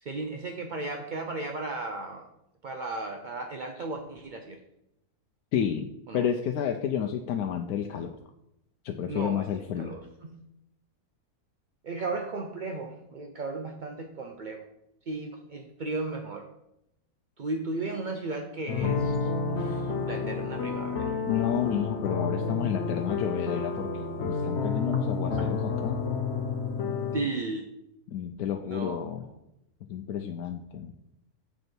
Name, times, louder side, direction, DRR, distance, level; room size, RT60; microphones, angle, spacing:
voice 1, 0.0-2.3 2.6-4.6 6.1-6.3 9.1-10.4 11.8-14.7 15.1-16.5 17.4-21.2 27.1-27.7 28.6-29.3, right 3 dB, 55° right, 4 dB, 0.5 m, -35 dB
voice 2, 5.5-5.9 6.1-8.2 8.8-9.9 21.3-23.9 24.2-26.0 28.1-29.2 29.9-30.9, left 9 dB, 80° left, 4 dB, 1.1 m, -30 dB
sound 1, 18.7-27.2, left 4 dB, 50° left, 1.1 m, -30 dB
7.2 x 6.5 x 4.4 m, 0.84 s
omnidirectional pair, 1.6 m